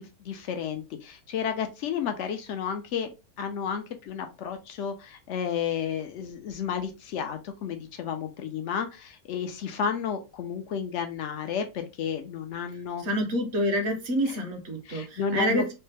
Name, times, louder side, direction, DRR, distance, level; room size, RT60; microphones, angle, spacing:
voice 1, 0.0-3.1 3.4-13.0 14.3-14.4 14.9-15.7, left 7 dB, 65° left, 0.7 m, -32 dB
voice 2, 13.0-15.7, equal, 55° right, 0.9 m, -27 dB
3.2 x 2.1 x 3.2 m
omnidirectional pair, 1.6 m